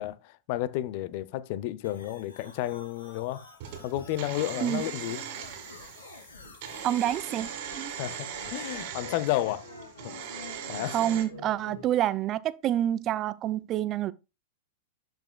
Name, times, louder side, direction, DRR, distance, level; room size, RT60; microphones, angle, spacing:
voice 1, 0.0-3.4 3.8-5.2 7.9-9.7 10.0-10.3 10.7-11.0, left 14 dB, 50° left, 0.6 m, -32 dB
sound 1, 1.8-11.9, left 3 dB, 75° left, 3.0 m, -47 dB
sound 2, 3.6-11.2, right 8 dB, 55° right, 1.9 m, -40 dB
voice 2, 6.8-7.9 10.9-14.1, right 12 dB, 35° right, 0.5 m, -28 dB
12.0 x 5.3 x 2.3 m
figure-of-eight pair, 100°, 0 cm